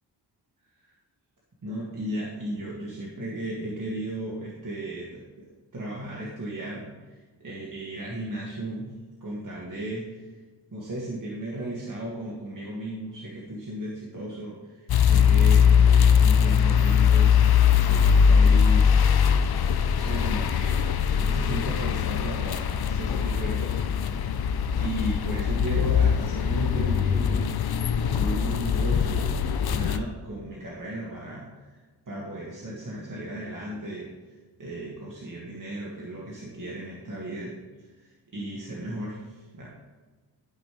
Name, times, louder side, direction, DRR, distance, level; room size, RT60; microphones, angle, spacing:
voice 1, 1.6-5.5 5.7-6.9 7.4-8.9 9.2-10.2 10.7-14.5 15.0-17.3 17.8-18.9 19.9-24.3 24.8-27.5 28.1-29.3 29.6-31.7 32.1-34.1 34.6-37.5 38.0-39.7, right 1 dB, 45° right, -5 dB, 2.2 m, -35 dB
sound 1, 14.9-30.0, left 7 dB, 60° left, 0.6 m, -21 dB
13.0 x 5.2 x 3.4 m, 1.3 s
cardioid pair, 50°, 43 cm